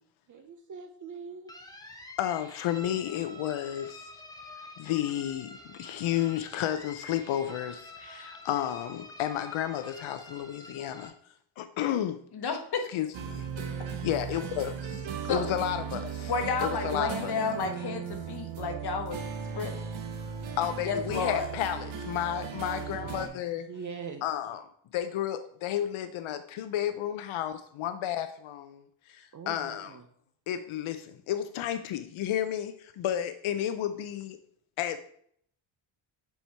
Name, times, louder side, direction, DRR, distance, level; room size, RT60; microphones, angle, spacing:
voice 1, 0.3-1.5 23.7-24.3 29.3-30.0, right 5 dB, 40° right, 6 dB, 0.5 m, -42 dB
sound 1, 1.5-11.1, left 2 dB, 10° left, 0.6 m, -47 dB
voice 2, 2.2-4.1 4.8-11.1 11.6-12.2 12.9-13.5 13.9-16.3 16.6-17.4 20.6-23.7 24.2-24.6 24.9-29.9 30.5-34.4 34.8-35.0, left 11 dB, 75° left, 10 dB, 0.6 m, -32 dB
voice 3, 12.3-12.9 15.3-15.4 16.3-19.2 19.5-19.8 20.8-21.5, left 5 dB, 50° left, 6 dB, 1.0 m, -31 dB
sound 2, 13.1-23.3, right 7 dB, 70° right, 1.0 m, -37 dB
7.1 x 4.5 x 3.4 m, 0.63 s
wide cardioid pair, 175°, 49 cm